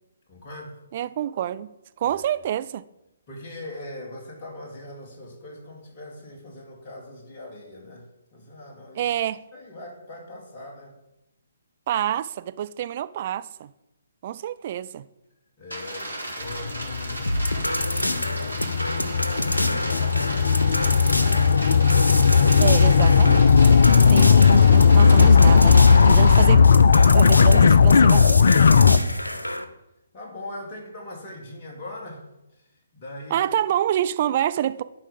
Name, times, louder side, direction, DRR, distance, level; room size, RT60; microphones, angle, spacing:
voice 1, 0.3-0.8 2.0-2.2 3.3-9.1 9.5-11.0 15.6-17.4 17.9-18.7 19.2-21.7 30.1-32.2 32.5-32.7 32.9-33.5, left 1 dB, 35° left, 2.4 m, -41 dB
voice 2, 0.9-1.7 2.0-2.8 9.0-9.4 11.9-13.7 14.2-15.0 22.6-23.7 24.1-26.6 27.0-28.4 33.3-34.8, right 11 dB, 40° right, 0.4 m, -27 dB
sound 1, 15.7-26.4, right 1 dB, 90° right, 2.9 m, -35 dB
sound 2, 16.5-29.0, left 6 dB, 60° left, 0.5 m, -16 dB
sound 3, 17.3-29.6, left 1 dB, 85° left, 0.9 m, -28 dB
11.0 x 4.8 x 6.9 m
figure-of-eight pair, 135°, 0 cm